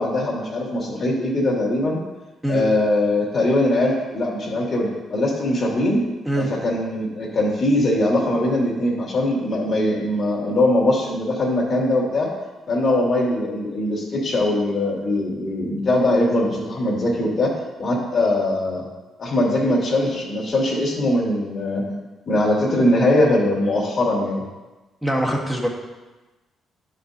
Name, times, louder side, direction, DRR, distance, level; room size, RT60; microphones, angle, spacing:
voice 1, 0.0-2.0 2.5-6.0 6.4-12.3 12.7-17.5 17.8-18.8 19.2-22.0 22.3-24.4, left 1 dB, 50° left, -2 dB, 2.2 m, -21 dB
voice 2, 25.0-25.7, right 1 dB, 5° right, -1 dB, 1.3 m, -23 dB
11.0 x 5.1 x 2.7 m, 1.1 s
cardioid pair, 90°, 0 cm